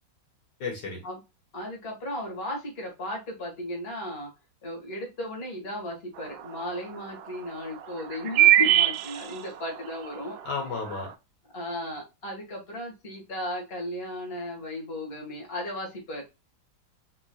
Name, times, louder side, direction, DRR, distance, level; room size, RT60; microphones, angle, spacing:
voice 1, 0.6-1.0 10.4-11.1, left 4 dB, 65° left, 0 dB, 1.7 m, -32 dB
voice 2, 1.5-4.3 4.6-10.4 11.5-16.2, left 1 dB, 35° left, 0 dB, 1.7 m, -35 dB
sound 1, 6.2-6.3 6.6-6.7 8.1-9.6 10.2-10.3 10.6-11.0, right 13 dB, 70° right, 0.9 m, -20 dB
4.3 x 3.0 x 2.3 m, 0.25 s
omnidirectional pair, 2.1 m